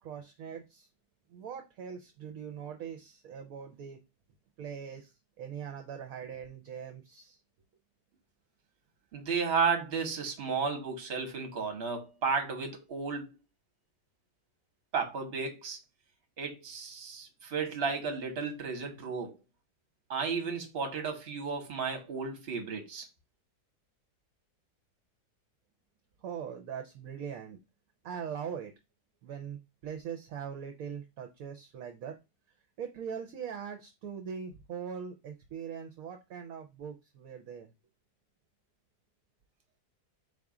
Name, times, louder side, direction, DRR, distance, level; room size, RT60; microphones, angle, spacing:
voice 1, 0.0-0.9 1.3-4.0 4.6-7.4 26.2-27.6 28.0-28.7 29.2-32.2 32.8-37.7, right 7 dB, 65° right, 1.0 m, -41 dB
voice 2, 9.1-13.3 14.9-15.8 16.4-19.4 20.1-23.1, right 5 dB, 40° right, 1.1 m, -33 dB
4.1 x 2.4 x 4.7 m
omnidirectional pair, 1.7 m